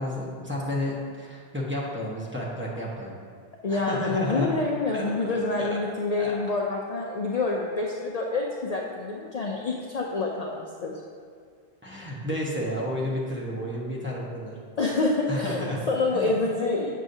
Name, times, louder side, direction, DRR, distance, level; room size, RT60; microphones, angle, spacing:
voice 1, 0.0-3.2 3.7-4.5 4.9-5.0 5.6-5.7 6.2-6.3 11.8-14.5 15.3-15.8 16.1-16.3, left 1 dB, 10° right, -6 dB, 1.0 m, -31 dB
voice 2, 3.6-10.9 14.8-16.9, left 3 dB, 50° left, -2 dB, 0.6 m, -27 dB
8.2 x 6.3 x 2.7 m, 2.1 s
omnidirectional pair, 1.0 m